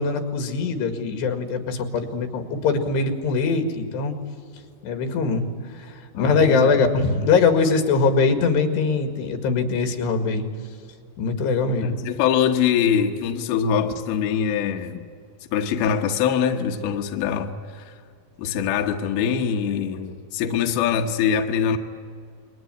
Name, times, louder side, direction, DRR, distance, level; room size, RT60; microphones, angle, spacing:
voice 1, 0.0-4.2 4.8-5.4 5.7-10.5 11.2-12.0, left 4 dB, 85° left, 6 dB, 4.1 m, -22 dB
voice 2, 6.1-6.8 11.8-15.0 15.5-17.9 18.4-21.8, left 8 dB, 70° left, 4 dB, 2.9 m, -23 dB
28.5 x 22.5 x 9.2 m, 2.2 s
omnidirectional pair, 4.8 m